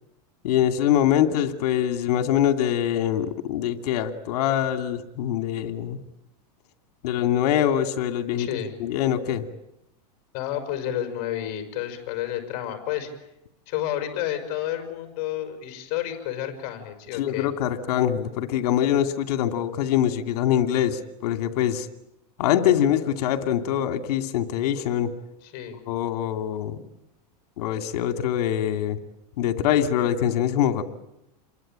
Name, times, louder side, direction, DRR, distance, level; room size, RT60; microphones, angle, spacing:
voice 1, 0.4-6.0 7.0-8.5 8.8-9.4 17.2-21.9 22.4-25.1 25.9-26.8 27.6-29.0 29.4-30.8, left 10 dB, 70° left, 8 dB, 2.7 m, -24 dB
voice 2, 8.4-8.7 10.3-13.1 13.7-17.5 25.4-25.8, left 11 dB, 45° left, 5 dB, 5.5 m, -30 dB
28.5 x 23.0 x 9.0 m, 0.86 s
supercardioid pair, 150°, 21 cm